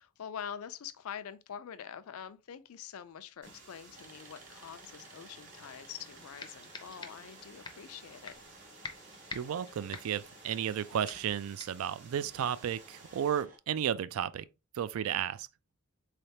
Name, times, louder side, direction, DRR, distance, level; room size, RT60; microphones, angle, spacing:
voice 1, 0.0-8.3, left 8 dB, 75° left, 0.4 m, -45 dB
sound 1, 3.4-11.4 12.2-13.6, right 2 dB, 35° right, 0.8 m, -57 dB
sound 2, 3.4-13.4, right 3 dB, 55° right, 1.6 m, -56 dB
sound 3, 5.9-6.0 6.4-7.4 7.6-7.9 8.3-8.6 8.8-10.8 11.1-11.3 11.6-11.9, left 4 dB, 20° left, 0.5 m, -46 dB
voice 2, 9.3-14.5 14.7-15.5, right 9 dB, 70° right, 0.3 m, -33 dB
3.9 x 3.3 x 2.8 m
head